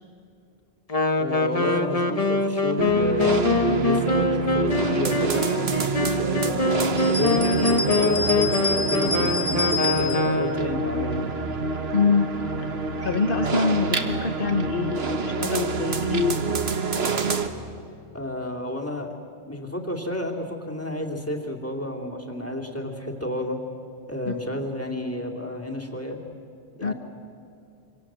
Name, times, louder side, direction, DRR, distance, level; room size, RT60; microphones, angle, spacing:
Wind instrument woodwind instrument, 0.9-10.8, left 3 dB, 35° left, 1.2 m, -24 dB
voice 1, 1.1-6.7 7.1-11.2 18.1-19.2 19.5-23.6 24.1-26.2 26.8-26.9, left 1 dB, 15° left, 0 dB, 2.8 m, -31 dB
sound 1, 2.8-17.5, right 4 dB, 75° right, 1.6 m, -27 dB
sound 2, 7.0-10.3, left 2 dB, 15° right, 2.9 m, -28 dB
voice 2, 11.9-12.3 13.0-16.4 24.3-24.4 26.8-26.9, left 5 dB, 60° left, 9 dB, 1.2 m, -25 dB
26.5 x 26.5 x 7.6 m, 2.6 s
omnidirectional pair, 1.1 m